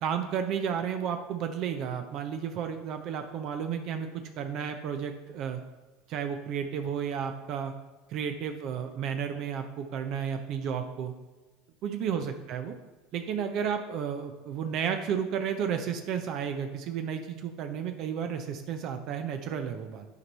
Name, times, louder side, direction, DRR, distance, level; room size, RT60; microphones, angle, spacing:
voice 1, 0.0-4.1 4.4-5.6 6.1-7.7 8.1-11.1 11.8-12.7 13.1-20.0, right 7 dB, 55° right, 6 dB, 0.7 m, -32 dB
9.7 x 4.6 x 4.1 m, 1.2 s
supercardioid pair, 105°, 0 cm